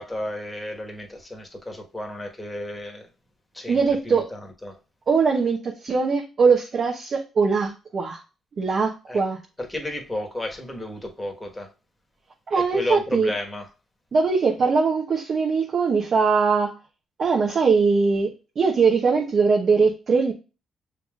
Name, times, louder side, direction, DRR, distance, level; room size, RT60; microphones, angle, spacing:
voice 1, 0.0-3.1 3.5-4.8 9.1-9.2 9.6-11.7 12.5-13.7, left 1 dB, 10° left, 1.4 m, -33 dB
voice 2, 3.7-4.3 5.1-8.2 8.6-9.4 12.5-13.3 14.1-16.8 17.2-20.3, right 5 dB, 50° right, 0.9 m, -21 dB
6.5 x 3.4 x 2.4 m
cardioid pair, 90°, 0 cm